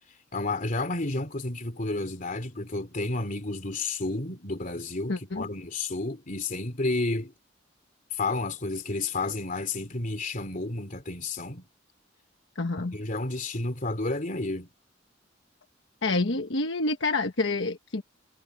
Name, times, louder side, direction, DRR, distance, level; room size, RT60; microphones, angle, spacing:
voice 1, 0.3-7.3 8.1-11.7 12.8-14.7, left 2 dB, 45° left, 3.1 m, -31 dB
voice 2, 5.1-5.5 12.5-13.0 16.0-18.0, left 3 dB, 70° left, 1.3 m, -28 dB
head